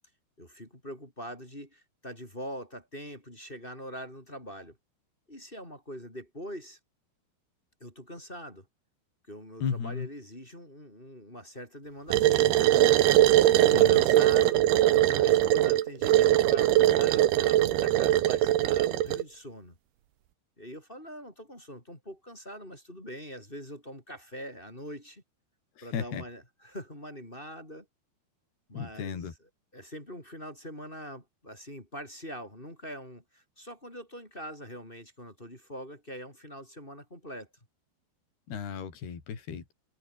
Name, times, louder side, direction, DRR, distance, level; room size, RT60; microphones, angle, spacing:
voice 1, 0.4-4.8 5.3-6.8 7.8-8.7 9.3-12.9 13.5-14.7 14.9-19.8 20.6-25.2 25.8-27.9 28.7-37.5, equal, 10° left, 4.5 m, -43 dB
voice 2, 9.6-10.1 13.7-14.1 25.8-26.2 28.7-29.3 38.5-39.6, left 7 dB, 50° left, 6.1 m, -34 dB
sound 1, 12.1-19.2, right 13 dB, 70° right, 2.7 m, -21 dB
omnidirectional pair, 5.9 m